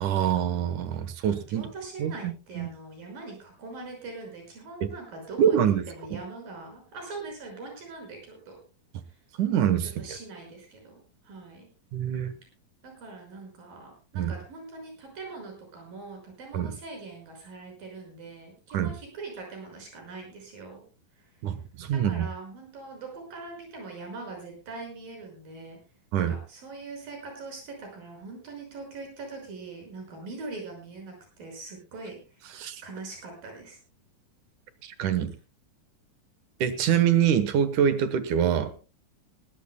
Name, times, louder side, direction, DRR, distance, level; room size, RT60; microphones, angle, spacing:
voice 1, 0.0-1.7 2.0-2.7 4.8-4.9 5.4-5.8 6.1-6.2 9.4-9.9 11.9-12.3 14.2-14.3 16.5-16.8 18.7-18.9 21.4-22.3 26.1-26.4 32.6-32.8 34.8-35.3 36.6-38.8, right 9 dB, 70° right, 11 dB, 2.5 m, -25 dB
voice 2, 1.2-8.6 9.1-9.2 9.8-11.7 12.8-20.8 21.2-21.3 21.9-25.8 26.2-32.5 32.8-33.8, right 3 dB, 85° right, 2 dB, 7.4 m, -42 dB
21.0 x 16.5 x 2.2 m, 0.33 s
omnidirectional pair, 3.9 m